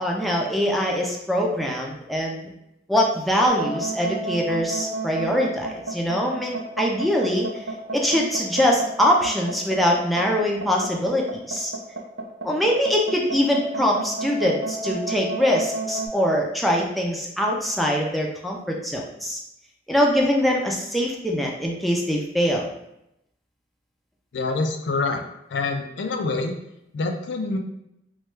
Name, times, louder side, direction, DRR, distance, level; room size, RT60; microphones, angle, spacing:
voice 1, 0.0-2.5 2.9-7.5 7.9-11.7 12.4-19.4 19.9-22.7, equal, ahead, -2 dB, 0.4 m, -23 dB
sound 1, 3.5-16.1, right 2 dB, 75° right, 0.5 m, -31 dB
voice 2, 24.3-25.2 25.5-26.5 26.9-27.6, left 3 dB, 85° left, 4 dB, 0.4 m, -26 dB
3.1 x 2.3 x 3.2 m, 0.83 s
head